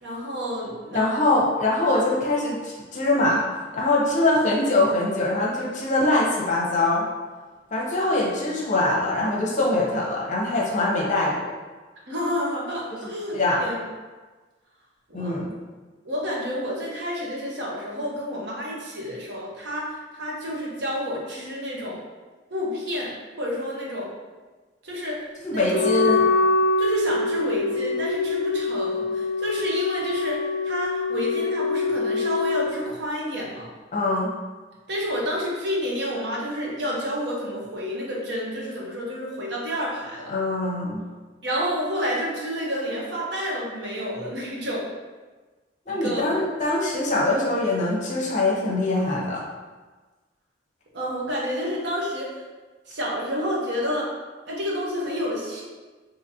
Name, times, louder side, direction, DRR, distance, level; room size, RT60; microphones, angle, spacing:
voice 1, 0.0-1.1 12.1-13.8 15.1-15.4 16.0-22.0 22.5-24.1 24.8-25.2 25.5-25.9 26.8-33.7 34.9-40.3 41.4-44.9 45.9-46.3 50.9-52.4 52.9-54.1 54.5-55.6, equal, 60° right, -4 dB, 0.9 m, -29 dB
voice 2, 0.9-3.4 3.7-7.1 7.7-11.5 13.3-13.6 15.1-15.5 25.4-26.3 33.9-34.3 40.3-41.0 45.9-49.4, left 2 dB, 40° left, -3 dB, 0.7 m, -23 dB
Wind instrument woodwind instrument, 25.6-32.7, left 3 dB, 40° right, 1.3 m, -24 dB
3.9 x 2.8 x 2.7 m, 1.3 s
head